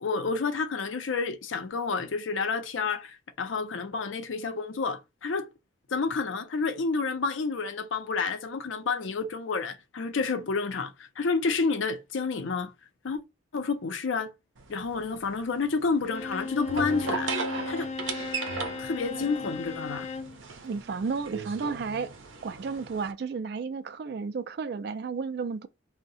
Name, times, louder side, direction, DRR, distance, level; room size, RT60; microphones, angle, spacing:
voice 1, 0.0-5.5 5.9-12.7 13.0-13.2 13.5-14.3 14.7-17.3 17.7-17.9 18.8-20.1, left 4 dB, 85° left, 0.5 m, -29 dB
sound 1, 14.6-23.1, right 4 dB, 90° right, 0.6 m, -37 dB
Bowed string instrument, 16.0-20.4, left 4 dB, 35° left, 0.3 m, -36 dB
voice 2, 20.6-22.1 22.4-25.7, right 5 dB, 55° right, 0.3 m, -33 dB
2.7 x 2.1 x 4.0 m
head